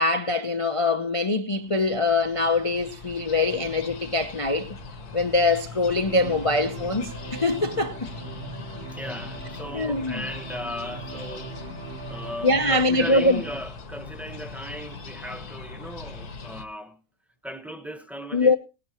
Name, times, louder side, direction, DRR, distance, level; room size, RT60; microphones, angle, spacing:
voice 1, 0.0-4.8 5.1-8.0 9.7-10.3 12.4-13.4 18.3-18.6, left 2 dB, 40° left, 0.4 m, -23 dB
sound 1, 1.6-16.7, left 4 dB, 70° left, 1.8 m, -40 dB
sound 2, 6.1-13.6, right 3 dB, 40° right, 1.1 m, -40 dB
voice 2, 8.9-11.5 12.1-17.0 17.4-18.6, equal, ahead, 0.9 m, -37 dB
18.5 x 11.5 x 3.0 m
omnidirectional pair, 1.8 m